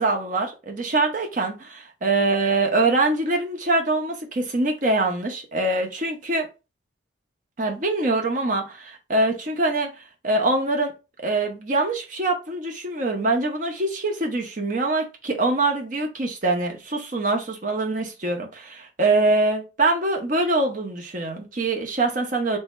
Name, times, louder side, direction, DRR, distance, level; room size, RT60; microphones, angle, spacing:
voice 1, 0.0-6.5 7.6-9.9 10.2-10.9 11.2-22.6, right 2 dB, 45° right, 0.9 m, -24 dB
3.4 x 2.7 x 4.2 m
head